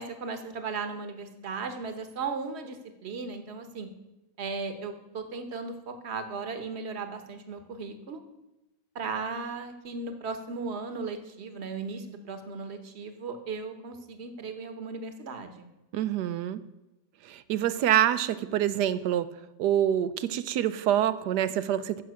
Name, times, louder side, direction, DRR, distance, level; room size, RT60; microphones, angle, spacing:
voice 1, 0.0-3.9 4.4-8.2 8.9-15.7, right 4 dB, 45° right, 8 dB, 1.2 m, -36 dB
voice 2, 15.9-16.6 17.2-19.3 19.6-22.0, right 11 dB, 75° right, 14 dB, 1.2 m, -26 dB
15.0 x 5.8 x 6.3 m, 0.98 s
omnidirectional pair, 1.9 m